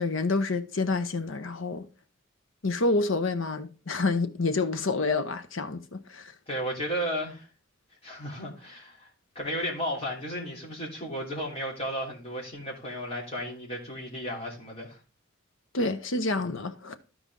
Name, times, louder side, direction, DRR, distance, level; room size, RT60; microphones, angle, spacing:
voice 1, 0.0-1.8 2.6-6.3 15.7-17.0, left 3 dB, 80° left, 0.9 m, -28 dB
voice 2, 6.5-7.5 8.0-9.1 9.3-15.0, equal, 30° left, 3.2 m, -34 dB
13.0 x 4.9 x 3.7 m
head